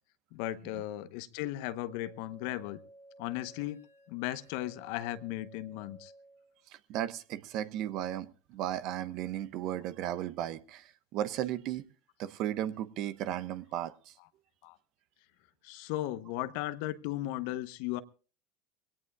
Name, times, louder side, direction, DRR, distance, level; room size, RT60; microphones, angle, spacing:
voice 1, 0.3-2.8 3.2-3.8 4.1-6.1 14.6-14.8 15.6-18.0, left 15 dB, 65° left, 14 dB, 0.9 m, -36 dB
sound 1, 1.6-6.6, right 1 dB, 85° left, 2.1 m, -56 dB
voice 2, 6.7-11.8 12.2-14.1, right 12 dB, 55° right, 14 dB, 1.0 m, -35 dB
22.5 x 17.5 x 2.4 m, 0.37 s
hypercardioid pair, 85°, 0 cm